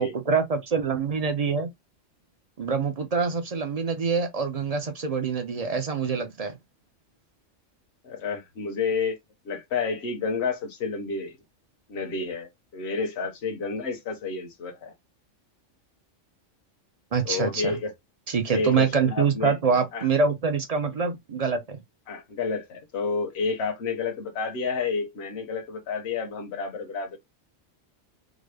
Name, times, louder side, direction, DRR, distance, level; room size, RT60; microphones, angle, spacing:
voice 1, 0.0-1.7 2.6-6.6 17.1-17.8 18.3-21.8, right 5 dB, 40° right, 0.6 m, -25 dB
voice 2, 8.0-9.2 9.4-11.4 11.9-14.9 17.2-17.9 18.5-19.6 19.9-20.1 22.1-27.2, left 4 dB, 60° left, 1.1 m, -30 dB
3.8 x 2.1 x 3.3 m
omnidirectional pair, 1.3 m